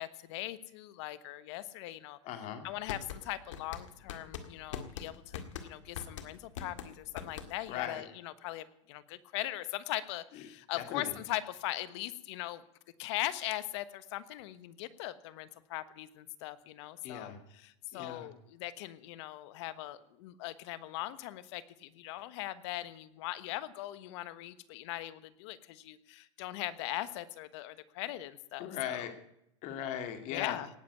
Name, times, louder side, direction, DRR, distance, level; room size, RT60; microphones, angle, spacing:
voice 1, 0.0-2.2 2.6-12.6 13.0-29.0 30.3-30.7, left 15 dB, 65° left, 14 dB, 1.3 m, -40 dB
voice 2, 2.2-2.6 7.7-8.0 10.3-10.4 10.7-11.1 17.0-17.4 17.9-18.3 28.6-29.1 29.6-30.6, left 9 dB, 50° left, 6 dB, 2.5 m, -39 dB
sound 1, 2.7-7.8, left 8 dB, 85° left, 1.9 m, -43 dB
18.5 x 7.7 x 9.5 m, 0.79 s
supercardioid pair, 125°, 16 cm